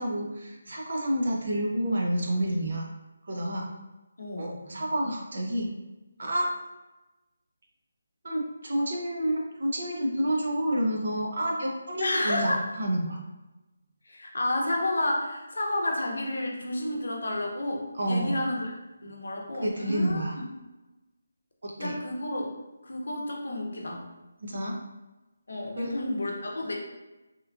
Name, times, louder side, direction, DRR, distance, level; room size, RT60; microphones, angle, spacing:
voice 1, 0.0-2.9 3.2-3.7 4.4-5.7 6.2-6.5 8.2-13.2 18.0-18.4 19.6-20.4 21.6-21.9 24.4-24.8 25.8-25.9, right 1 dB, 55° right, -1 dB, 0.6 m, -29 dB
voice 2, 4.2-4.6 12.0-12.6 14.1-18.7 19.0-20.5 21.8-22.5 22.8-24.1 25.5-26.7, left 1 dB, 75° left, 0 dB, 0.7 m, -31 dB
2.9 x 2.2 x 2.4 m, 1.1 s
hypercardioid pair, 175°, 0 cm